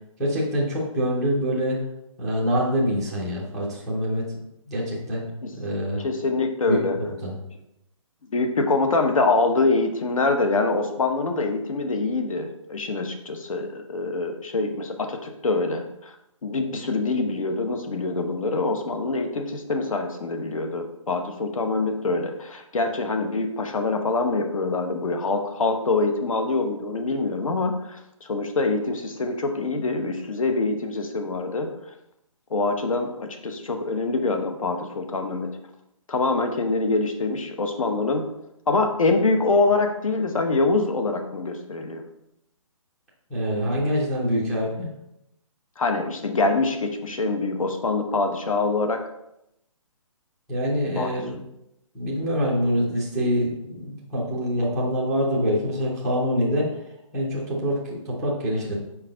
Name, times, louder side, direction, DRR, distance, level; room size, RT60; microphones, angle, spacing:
voice 1, 0.2-1.8 2.2-4.3 4.7-5.3 5.5-6.0 6.7-7.4 43.3-44.9 50.5-51.3 51.9-56.7 57.1-58.8, equal, ahead, -10 dB, 0.4 m, -25 dB
voice 2, 6.0-7.0 8.3-16.1 16.4-31.7 32.5-35.6 36.1-38.3 38.7-42.0 45.8-49.0 51.0-51.2, left 3 dB, 80° left, 5 dB, 1.0 m, -25 dB
5.8 x 4.7 x 3.8 m, 0.84 s
hypercardioid pair, 170°, 17 cm